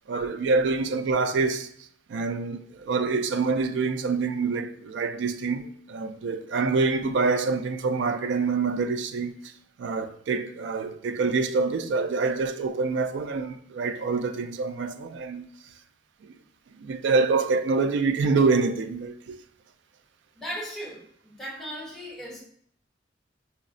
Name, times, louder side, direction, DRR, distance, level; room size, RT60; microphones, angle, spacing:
voice 1, 0.1-1.7 2.1-9.5 9.8-15.5 16.2-16.3 16.8-19.4, right 4 dB, 70° right, 0.3 m, -26 dB
voice 2, 20.3-22.4, equal, ahead, 0.9 m, -37 dB
5.6 x 2.0 x 2.5 m
head